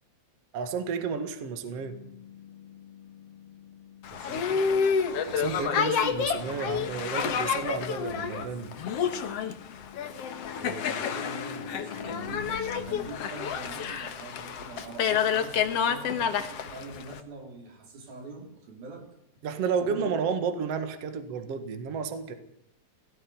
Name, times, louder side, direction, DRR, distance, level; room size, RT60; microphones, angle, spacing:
voice 1, 0.5-2.0 5.3-8.7 19.4-22.3, right 6 dB, 50° right, 2.5 m, -31 dB
sound 1, 1.7-13.0, left 8 dB, 75° left, 3.8 m, -45 dB
Boat Water vehicle, 4.0-17.2, left 7 dB, 55° left, 1.9 m, -29 dB
voice 2, 4.1-4.8 10.6-19.1 19.8-20.0, right 2 dB, 80° right, 5.6 m, -44 dB
17.5 x 16.5 x 9.9 m
omnidirectional pair, 4.2 m